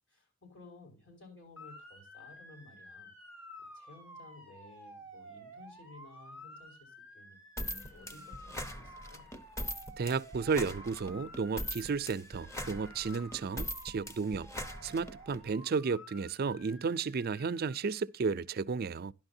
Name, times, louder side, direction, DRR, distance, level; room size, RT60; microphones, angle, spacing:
voice 1, 0.1-3.1 3.7-7.4 7.7-9.3, left 2 dB, 60° left, 5.3 m, -56 dB
Motor vehicle (road) / Siren, 1.6-17.8, equal, 80° left, 5.1 m, -52 dB
sound 1, 7.6-15.4, equal, 15° left, 0.8 m, -41 dB
voice 2, 10.0-14.5 14.8-19.1, right 5 dB, 50° right, 0.4 m, -33 dB
12.5 x 10.5 x 2.7 m
head